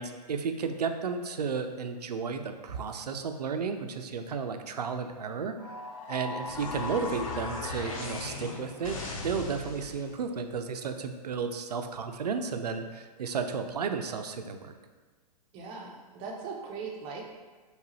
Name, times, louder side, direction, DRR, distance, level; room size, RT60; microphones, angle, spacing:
voice 1, 0.0-5.8 6.1-9.0 9.2-14.7, right 5 dB, 70° right, 6 dB, 0.5 m, -33 dB
sound 1, 5.6-10.1, left 3 dB, 55° left, 0.7 m, -37 dB
voice 2, 15.5-17.2, right 5 dB, 25° right, 0 dB, 0.6 m, -39 dB
4.6 x 3.2 x 3.0 m, 1.3 s
figure-of-eight pair, 115°, 21 cm